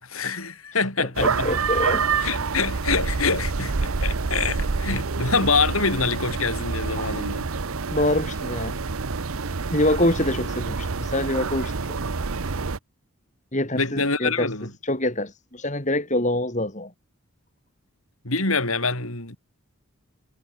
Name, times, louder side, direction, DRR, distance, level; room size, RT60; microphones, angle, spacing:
voice 1, 0.0-1.5 2.2-7.5 13.8-14.7 18.2-19.4, left 4 dB, 75° left, 7.0 m, -25 dB
voice 2, 1.0-2.1 7.9-8.8 9.7-12.0 13.5-14.5 14.8-16.9, left 1 dB, 35° left, 4.4 m, -25 dB
sound 1, 1.1-12.8, right 4 dB, 75° right, 0.9 m, -27 dB
head